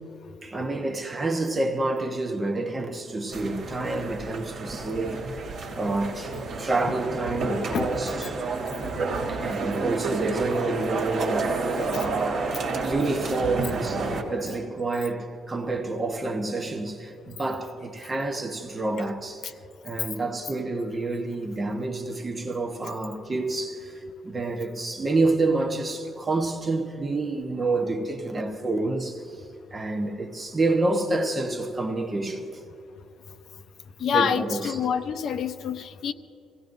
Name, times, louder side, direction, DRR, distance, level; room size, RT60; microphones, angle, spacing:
voice 1, 0.4-8.4 9.3-19.5 19.8-29.4 29.7-32.4 34.1-34.8, right 2 dB, 20° right, 1.1 m, -28 dB
sound 1, 3.3-14.2, right 3 dB, 55° right, 2.3 m, -30 dB
voice 2, 34.0-36.1, left 8 dB, 55° left, 0.7 m, -27 dB
25.0 x 17.0 x 2.6 m
cardioid pair, 160°, 0 cm